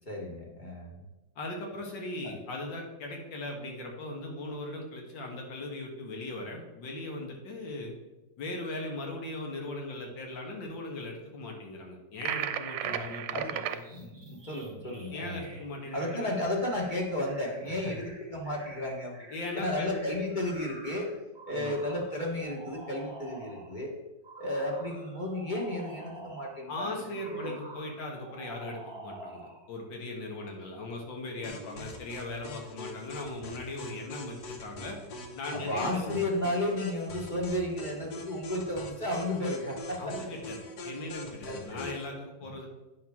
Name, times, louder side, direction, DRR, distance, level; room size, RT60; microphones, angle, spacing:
voice 1, 0.1-1.0 2.2-2.3 12.8-13.6 13.9-15.5 15.9-21.1 21.4-23.9 24.4-26.9 27.2-27.5 35.5-40.1 41.5-41.9, left 1 dB, 30° left, -1 dB, 1.3 m, -33 dB
voice 2, 1.4-7.9 8.4-13.9 15.1-16.4 17.7-17.9 19.3-20.2 21.5-21.8 26.7-35.0 35.4-36.2 40.0-42.7, left 2 dB, 85° left, 1 dB, 2.1 m, -39 dB
sound 1, 12.2-13.8, right 10 dB, 80° right, 1.2 m, -33 dB
sound 2, 13.6-23.8 24.2-26.7 27.1-29.7, right 2 dB, 35° right, 0.4 m, -49 dB
sound 3, 31.4-42.1, left 2 dB, 60° left, 1.5 m, -43 dB
9.4 x 6.0 x 3.6 m, 1.1 s
omnidirectional pair, 2.0 m